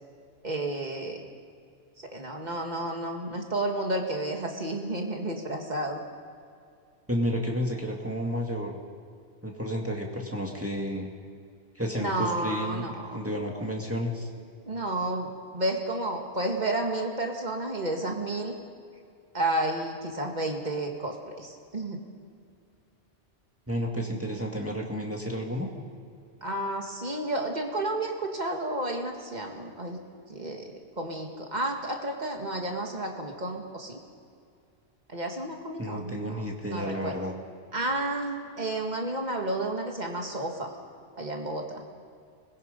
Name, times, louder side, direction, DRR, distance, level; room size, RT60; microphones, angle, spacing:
voice 1, 0.4-1.3 2.0-6.0 11.9-13.2 14.7-18.5 19.3-22.0 26.4-30.0 30.3-34.0 35.1-36.4 36.7-37.3 37.7-40.7 41.2-41.8, right 1 dB, 35° right, 2 dB, 2.1 m, -31 dB
voice 2, 7.1-8.8 9.4-11.1 11.8-14.3 23.7-25.7 35.8-37.3, equal, 10° right, -1 dB, 2.1 m, -31 dB
24.5 x 20.5 x 5.3 m, 2.4 s
omnidirectional pair, 1.2 m